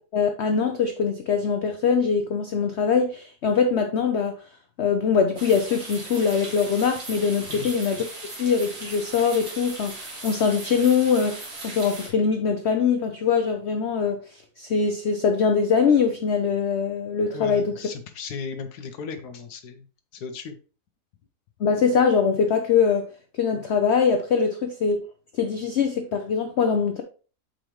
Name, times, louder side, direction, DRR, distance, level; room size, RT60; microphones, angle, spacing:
voice 1, 0.1-4.4 4.8-8.0 8.4-17.7 21.6-23.1 23.3-25.0 25.4-27.0, left 6 dB, 60° left, 0.7 m, -22 dB
sound 1, 5.4-12.1, right 2 dB, 65° right, 2.4 m, -38 dB
voice 2, 17.3-19.9 20.1-20.6, left 5 dB, 75° left, 1.2 m, -35 dB
7.6 x 5.0 x 3.0 m
omnidirectional pair, 1.7 m